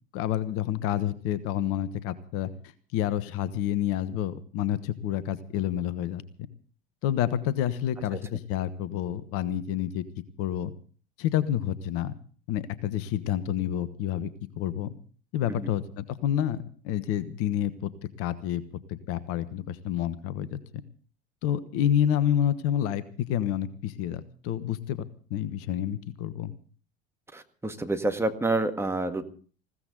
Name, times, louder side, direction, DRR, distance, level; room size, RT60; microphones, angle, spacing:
voice 1, 0.1-6.2 7.0-10.0 10.4-10.7 11.2-12.1 12.5-14.3 14.6-14.9 15.3-17.9 18.2-18.6 18.9-20.6 21.4-23.0 23.3-25.0 25.3-26.5, left 11 dB, 45° left, 15 dB, 1.2 m, -29 dB
voice 2, 27.3-29.2, right 2 dB, 10° right, 6 dB, 1.8 m, -28 dB
20.0 x 16.5 x 3.9 m, 0.42 s
figure-of-eight pair, 75°, 30 cm